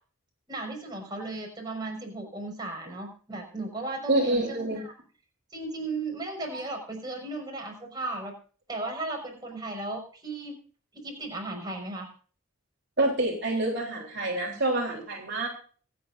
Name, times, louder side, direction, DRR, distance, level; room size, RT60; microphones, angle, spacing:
voice 1, 0.5-4.9 5.5-8.3 8.7-10.5 10.9-12.1, right 2 dB, 20° right, 0 dB, 5.8 m, -35 dB
voice 2, 4.1-4.8 13.0-15.5, right 2 dB, 55° right, -2 dB, 3.7 m, -27 dB
26.0 x 9.3 x 2.7 m, 0.40 s
head